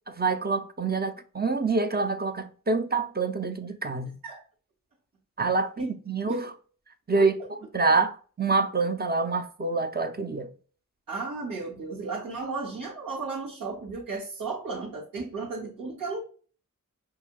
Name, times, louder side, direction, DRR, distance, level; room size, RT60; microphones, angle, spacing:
voice 1, 0.1-4.2 5.4-6.6 7.1-7.3 7.7-10.5, right 3 dB, 30° right, 0.6 m, -26 dB
voice 2, 11.1-16.2, right 4 dB, 85° right, 1.7 m, -34 dB
5.7 x 2.7 x 2.3 m
cardioid pair, 45°, 33 cm